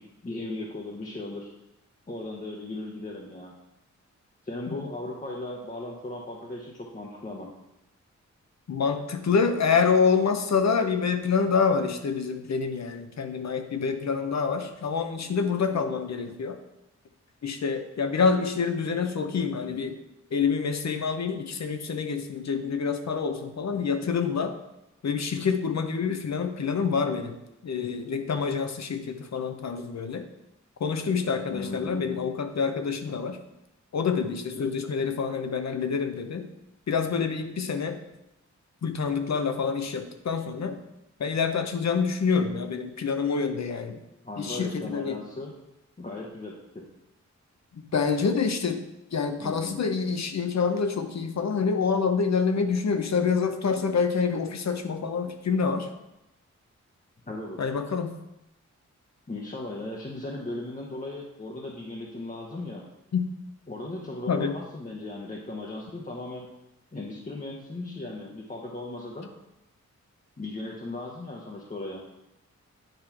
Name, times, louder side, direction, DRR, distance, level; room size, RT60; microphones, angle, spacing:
voice 1, 0.0-1.5 2.1-3.5 4.4-7.5 31.5-32.1 44.2-45.5 46.0-46.9 49.4-49.7 57.3-57.6 59.3-62.8 63.7-66.5 66.9-69.3 70.4-72.0, left 2 dB, 25° left, -2 dB, 1.0 m, -37 dB
voice 2, 8.7-16.6 17.4-20.0 20.3-24.5 25.0-27.4 27.6-30.2 30.8-33.4 33.9-36.5 36.9-38.0 38.8-40.8 41.2-44.0 44.4-45.2 47.7-48.8 49.1-55.9 57.6-58.2 63.1-63.3 64.3-64.5, left 5 dB, 65° left, 7 dB, 0.8 m, -27 dB
9.2 x 3.2 x 5.8 m, 0.89 s
wide cardioid pair, 75°, 30 cm